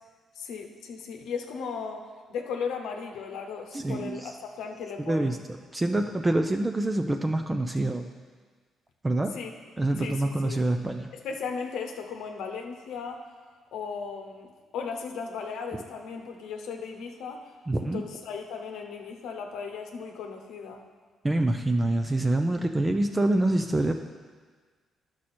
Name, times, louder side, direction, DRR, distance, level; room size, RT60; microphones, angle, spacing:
voice 1, 0.4-5.4 9.3-9.5 10.0-10.6 11.1-13.3 13.7-17.5 17.8-20.8, left 5 dB, 80° left, 3 dB, 0.9 m, -36 dB
voice 2, 3.7-4.3 5.0-5.4 5.7-8.1 9.0-9.3 9.8-11.1 17.7-18.0 21.2-23.9, right 2 dB, 20° right, 5 dB, 0.5 m, -26 dB
11.0 x 6.3 x 4.3 m, 1.5 s
cardioid pair, 90°, 0 cm